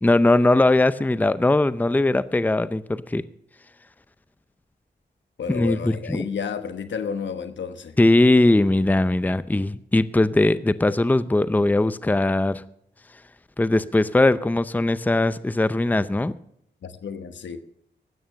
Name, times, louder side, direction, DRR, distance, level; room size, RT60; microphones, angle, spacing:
voice 1, 0.0-3.2 5.5-6.2 8.0-12.6 13.6-16.4, left 2 dB, 10° left, 15 dB, 0.6 m, -20 dB
voice 2, 5.4-8.0 16.8-17.6, left 6 dB, 80° left, 10 dB, 1.1 m, -31 dB
13.0 x 8.8 x 6.4 m, 0.72 s
cardioid pair, 55°, 19 cm